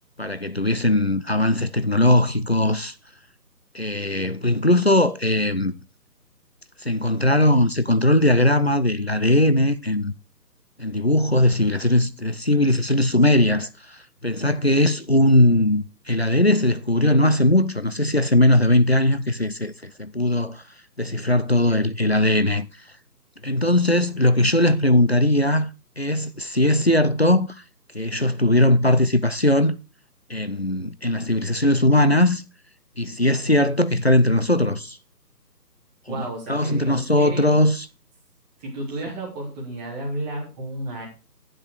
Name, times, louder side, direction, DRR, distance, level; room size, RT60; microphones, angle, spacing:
voice 1, 0.2-2.9 3.7-5.7 6.8-10.1 10.8-13.7 14.2-20.6 21.0-22.7 23.4-25.7 26.0-27.5 27.9-29.8 30.3-32.4 33.0-35.0 36.1-36.2 36.5-37.9, left 1 dB, 40° left, 0.4 m, -19 dB
voice 2, 36.1-37.5 38.6-41.0, right 1 dB, 5° right, 1.1 m, -32 dB
9.6 x 7.5 x 4.8 m
figure-of-eight pair, 155°, 50 cm